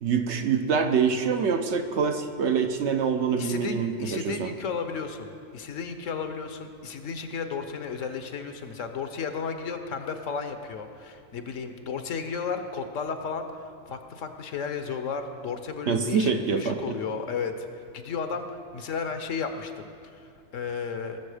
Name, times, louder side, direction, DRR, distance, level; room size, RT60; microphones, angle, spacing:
voice 1, 0.0-4.5 15.9-17.0, right 6 dB, 60° right, 6 dB, 1.0 m, -25 dB
voice 2, 3.4-13.5 13.9-17.7 17.9-21.2, left 5 dB, 70° left, 7 dB, 1.2 m, -33 dB
20.0 x 7.1 x 4.9 m, 2.3 s
omnidirectional pair, 1.4 m